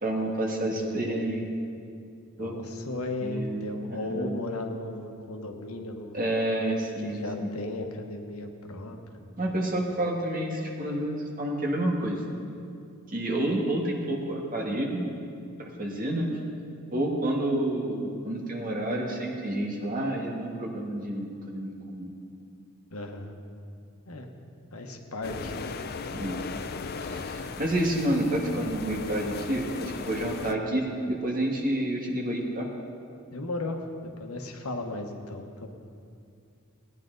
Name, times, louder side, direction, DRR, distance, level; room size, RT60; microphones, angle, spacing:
voice 1, 0.0-1.4 2.4-2.6 3.2-4.4 6.1-7.1 7.4-7.5 9.4-12.2 13.1-15.0 15.6-16.4 16.9-22.1 26.1-26.4 27.0-32.7, right 1 dB, 40° right, -1 dB, 1.6 m, -29 dB
voice 2, 0.6-1.3 2.4-6.2 7.0-9.6 22.9-23.3 24.1-24.3 24.7-25.8 33.3-35.7, left 2 dB, 80° left, 4 dB, 1.1 m, -36 dB
sound 1, 25.2-30.5, left 4 dB, 45° left, 0.4 m, -37 dB
17.5 x 9.9 x 3.9 m, 2.4 s
head